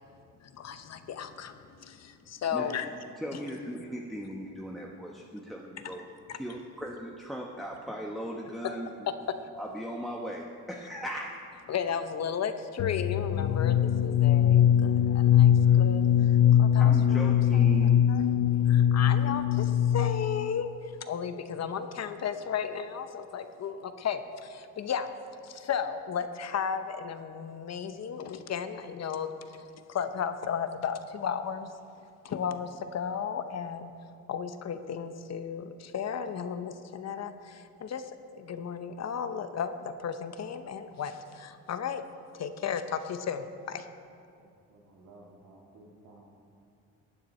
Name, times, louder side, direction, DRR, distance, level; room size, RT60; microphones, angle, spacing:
voice 1, 0.4-2.9 6.3-6.4 8.6-8.7 9.4-9.5 11.7-17.4 17.7-18.2 18.7-25.1 25.4-29.3 29.9-31.7 32.2-33.9 34.3-42.0 42.3-43.9, left 7 dB, 55° left, 10 dB, 0.8 m, -34 dB
voice 2, 3.2-6.1 6.3-8.9 9.6-11.3 15.6-15.8 16.8-18.2, equal, ahead, -1 dB, 1.1 m, -38 dB
sound 1, 12.8-20.5, left 10 dB, 70° left, 0.5 m, -22 dB
voice 3, 44.4-46.2, right 2 dB, 70° right, -2 dB, 1.8 m, -55 dB
16.0 x 9.4 x 4.3 m, 2.5 s
cardioid pair, 85°, 32 cm